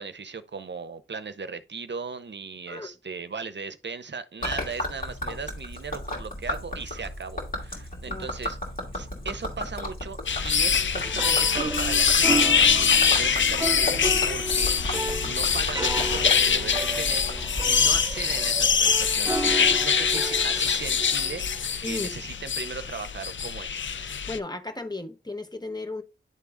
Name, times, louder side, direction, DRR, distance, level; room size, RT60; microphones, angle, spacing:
voice 1, 0.0-8.6 8.9-10.2 10.4-21.4 21.8-23.8, right 5 dB, 60° right, 0.7 m, -37 dB
Gurgling / Liquid, 4.4-19.0, left 1 dB, 40° left, 2.6 m, -35 dB
sound 1, 10.3-24.4, left 6 dB, 65° left, 0.5 m, -24 dB
sound 2, 11.0-21.8, right 2 dB, 15° right, 0.4 m, -33 dB
voice 2, 24.3-26.0, left 2 dB, 20° left, 1.0 m, -34 dB
10.5 x 3.7 x 3.5 m
wide cardioid pair, 70°, 21 cm